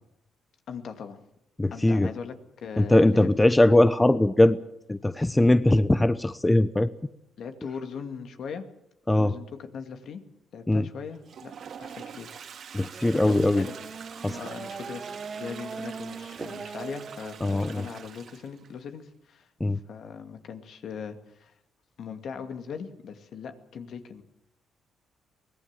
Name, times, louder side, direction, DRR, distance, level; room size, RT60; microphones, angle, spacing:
voice 1, 0.7-1.2 1.7-3.3 3.7-3.8 7.4-8.7 9.2-10.2 10.5-11.5 11.8-12.4 13.1-13.7 14.3-19.5 19.9-21.5 22.0-24.2, left 6 dB, 65° left, 7 dB, 2.3 m, -40 dB
voice 2, 1.6-2.1 2.8-4.6 4.9-6.9 9.1-9.3 10.7-10.9 12.7-13.7 14.2-14.4 17.4-17.9 19.6-19.8, left 1 dB, 15° left, 13 dB, 0.9 m, -21 dB
Toilet flush, 11.1-18.7, right 7 dB, 65° right, 2.3 m, -45 dB
Race car auto racing / Accelerating revving vroom, 12.9-18.1, right 5 dB, 40° right, 1.3 m, -40 dB
23.5 x 18.5 x 7.5 m, 0.79 s
cardioid pair, 80°, 0 cm